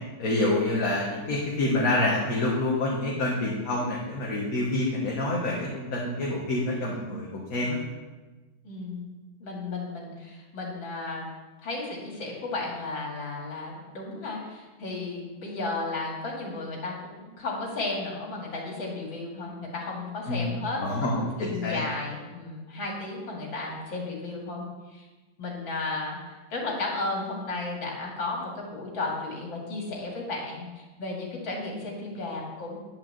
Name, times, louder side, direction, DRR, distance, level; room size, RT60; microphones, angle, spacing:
voice 1, 0.2-7.8 20.3-20.6 20.8-21.8, left 2 dB, 50° left, -3 dB, 1.9 m, -27 dB
voice 2, 8.6-9.1 9.4-11.2 11.6-24.6 24.9-25.1 25.4-32.8, left 3 dB, 75° left, -2 dB, 3.2 m, -34 dB
10.5 x 5.8 x 7.5 m, 1.2 s
omnidirectional pair, 2.1 m